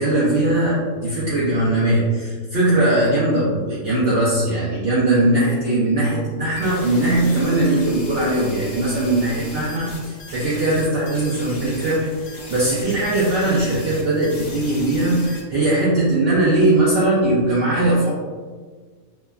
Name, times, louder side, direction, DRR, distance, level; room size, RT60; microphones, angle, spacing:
voice 1, 0.0-18.1, right 1 dB, 80° right, -7 dB, 0.5 m, -20 dB
sound 1, 6.6-15.4, left 2 dB, 65° left, 0.9 m, -38 dB
3.0 x 2.2 x 2.3 m, 1.5 s
omnidirectional pair, 1.6 m